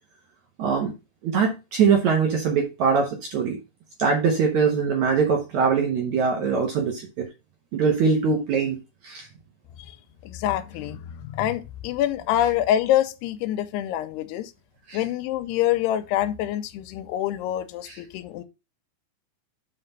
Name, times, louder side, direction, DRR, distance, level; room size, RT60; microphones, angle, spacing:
voice 1, 0.6-0.9 1.2-3.6 4.0-7.3 7.7-9.3 14.9-15.0 17.8-18.0, right 5 dB, 60° right, 2.0 m, -22 dB
voice 2, 10.2-14.5 14.9-18.4, left 12 dB, 80° left, 2.7 m, -26 dB
5.8 x 5.7 x 5.5 m
omnidirectional pair, 4.8 m